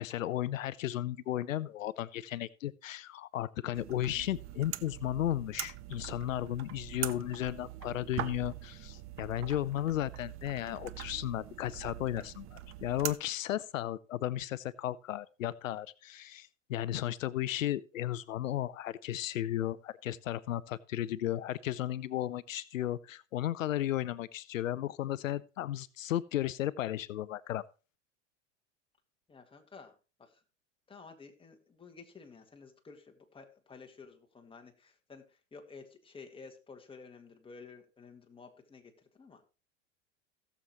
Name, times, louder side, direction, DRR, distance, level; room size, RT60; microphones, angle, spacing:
voice 1, 0.0-27.6, left 13 dB, 90° left, 0.6 m, -34 dB
sound 1, 3.7-13.2, right 14 dB, 35° right, 0.7 m, -43 dB
voice 2, 29.3-29.9 30.2-30.3 30.9-35.2 35.5-39.5, left 4 dB, 15° left, 2.0 m, -52 dB
17.0 x 7.2 x 3.0 m
hypercardioid pair, 100°, 38 cm